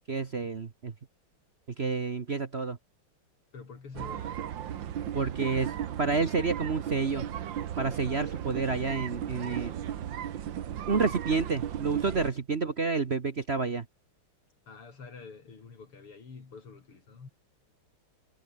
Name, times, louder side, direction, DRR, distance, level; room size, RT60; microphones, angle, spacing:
voice 1, 0.1-0.9 1.8-2.8 5.1-7.4 7.8-9.7 10.9-13.8, right 4 dB, 40° right, 1.1 m, -29 dB
voice 2, 3.5-4.7 14.7-17.3, left 4 dB, 85° left, 4.7 m, -47 dB
sound 1, 3.9-12.3, right 10 dB, 65° right, 1.8 m, -36 dB
omnidirectional pair, 2.4 m